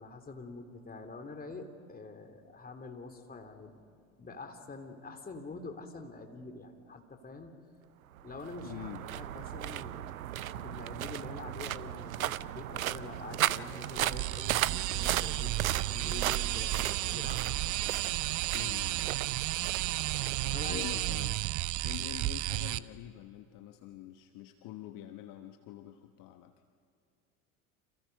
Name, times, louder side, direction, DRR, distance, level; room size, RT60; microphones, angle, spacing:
voice 1, 0.0-3.9 4.2-7.5 8.2-17.5 20.5-20.9, left 3 dB, 20° left, 5 dB, 3.4 m, -46 dB
sound 1, 8.1-21.5, right 13 dB, 80° right, 0.6 m, -36 dB
voice 2, 8.6-9.0 18.5-19.1 20.4-21.4 21.8-26.5, left 13 dB, 50° left, 7 dB, 1.3 m, -45 dB
sound 2, 14.0-22.8, right 16 dB, 45° right, 0.8 m, -33 dB
29.5 x 27.5 x 5.5 m, 2.4 s
figure-of-eight pair, 70°, 41 cm